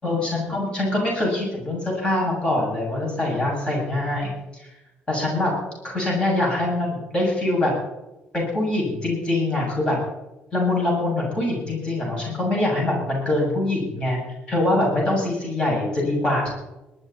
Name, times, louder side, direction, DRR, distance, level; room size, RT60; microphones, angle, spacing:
voice 1, 0.0-4.7 5.1-5.5 5.8-7.7 8.3-10.0 10.5-14.2 14.5-16.5, left 2 dB, 30° left, -3 dB, 7.4 m, -24 dB
22.0 x 12.5 x 4.3 m, 1.0 s
cardioid pair, 110°, 4 cm